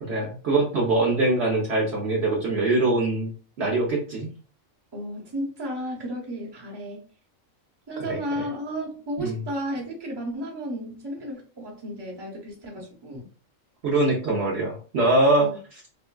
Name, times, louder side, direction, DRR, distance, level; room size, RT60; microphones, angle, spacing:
voice 1, 0.0-3.3 3.6-4.3 8.1-8.2 9.2-9.4 13.8-15.5, right 2 dB, 60° right, -1 dB, 0.9 m, -23 dB
voice 2, 4.9-7.1 7.9-13.3 15.4-15.5, equal, 20° right, -2 dB, 0.8 m, -33 dB
3.5 x 2.5 x 2.2 m, 0.38 s
omnidirectional pair, 1.4 m